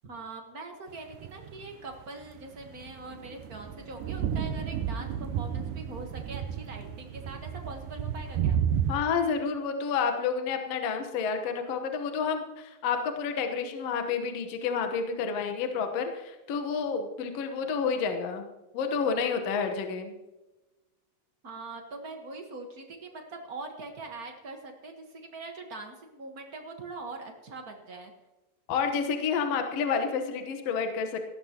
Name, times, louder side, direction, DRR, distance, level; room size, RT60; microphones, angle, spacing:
voice 1, 0.0-8.6 21.4-28.1, right 3 dB, 50° right, 3 dB, 1.0 m, -42 dB
sound 1, 1.1-1.6 2.5-9.0, right 8 dB, 85° right, 2.4 m, -32 dB
voice 2, 8.9-18.5 18.7-20.1 28.7-31.3, left 5 dB, 60° left, 6 dB, 1.9 m, -29 dB
18.5 x 15.0 x 2.9 m, 1.1 s
omnidirectional pair, 3.7 m